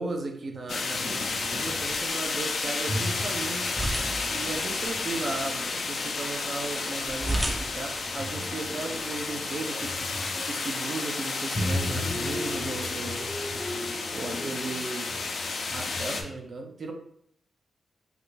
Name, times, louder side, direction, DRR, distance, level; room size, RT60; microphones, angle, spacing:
voice 1, 0.0-3.7 4.3-9.9 10.5-13.2 14.1-15.1 15.7-16.9, right 3 dB, 55° right, 2 dB, 0.7 m, -36 dB
sound 1, 0.7-16.2, left 4 dB, 65° left, 0.5 m, -32 dB
sound 2, 1.2-2.1 2.9-5.5 7.2-7.5 7.8-10.8 11.5-16.3, left 1 dB, 35° left, 0.8 m, -37 dB
sound 3, 1.9-9.3, right 1 dB, 10° right, 0.6 m, -37 dB
3.7 x 2.2 x 3.2 m, 0.69 s
cardioid pair, 60°, 0 cm